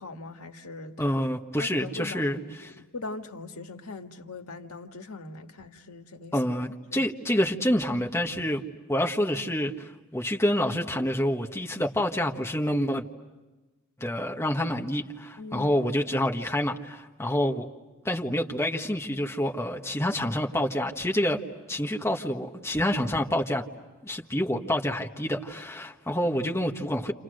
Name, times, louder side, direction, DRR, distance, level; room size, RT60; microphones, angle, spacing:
voice 1, 0.0-1.2 1.6-6.4 6.9-7.1 15.4-15.7, left 3 dB, 80° left, 1.8 m, -41 dB
voice 2, 1.0-2.4 6.3-8.6 8.9-13.0 14.0-17.7 18.0-21.4 21.7-23.6 24.0-27.1, equal, 10° left, 1.6 m, -27 dB
29.5 x 29.5 x 6.5 m
head